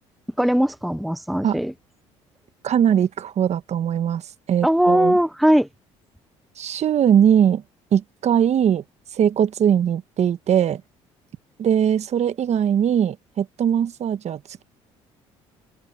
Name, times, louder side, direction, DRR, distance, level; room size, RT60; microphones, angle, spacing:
voice 1, 0.4-1.7 4.6-5.7, equal, ahead, 0.9 m, -19 dB
voice 2, 2.6-4.2 4.5-5.1 6.6-7.6 7.9-8.8 9.2-10.8 11.6-14.6, right 9 dB, 50° right, 1.4 m, -20 dB
supercardioid pair, 70°, 14 cm